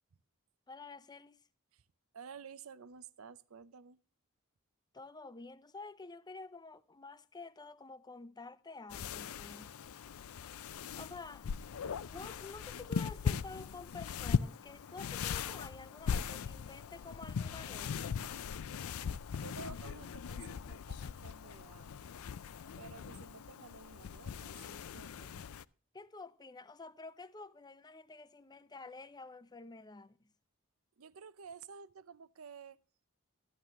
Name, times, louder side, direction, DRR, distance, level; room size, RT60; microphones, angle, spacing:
voice 1, 0.7-1.4 4.9-9.8 11.0-11.5 12.0-18.2 25.9-30.3, left 3 dB, 20° left, 0.6 m, -50 dB
voice 2, 2.1-4.0 19.4-22.1 22.8-25.5 31.0-32.8, right 6 dB, 75° right, 0.6 m, -52 dB
sound 1, 8.9-25.6, left 6 dB, 75° left, 0.4 m, -39 dB
13.5 x 11.0 x 3.0 m
head